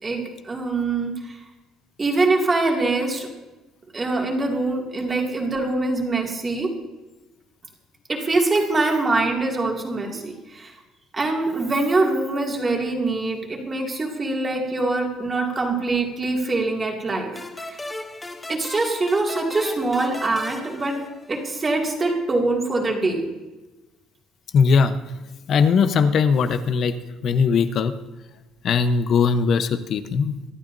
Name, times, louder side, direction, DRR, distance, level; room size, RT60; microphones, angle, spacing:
voice 1, 0.0-1.4 2.0-3.3 3.9-6.7 8.1-10.7 11.1-17.4 17.7-17.8 18.5-21.0 21.3-23.2, right 2 dB, 20° right, 0 dB, 2.4 m, -24 dB
sound 1, 17.4-21.7, left 2 dB, 10° left, 0.9 m, -37 dB
voice 2, 24.5-25.0 25.5-27.0 27.2-27.9 28.6-30.4, left 5 dB, 45° left, 10 dB, 0.9 m, -19 dB
25.5 x 12.0 x 2.7 m, 1.1 s
cardioid pair, 165°, 0 cm